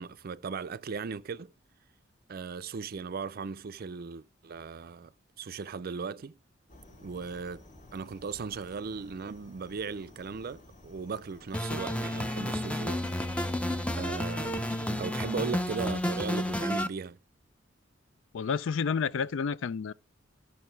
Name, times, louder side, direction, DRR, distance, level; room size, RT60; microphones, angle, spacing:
voice 1, 0.0-1.5 2.3-5.1 5.4-6.4 7.0-7.6 7.9-13.0 13.3-13.4 14.0-17.2, right 5 dB, 50° right, 0.4 m, -37 dB
sound 1, 6.7-16.8, left 1 dB, 45° left, 1.8 m, -54 dB
sound 2, 11.5-16.9, left 1 dB, 5° left, 0.5 m, -31 dB
voice 2, 18.3-19.9, left 6 dB, 70° left, 0.4 m, -30 dB
13.0 x 6.3 x 4.5 m
head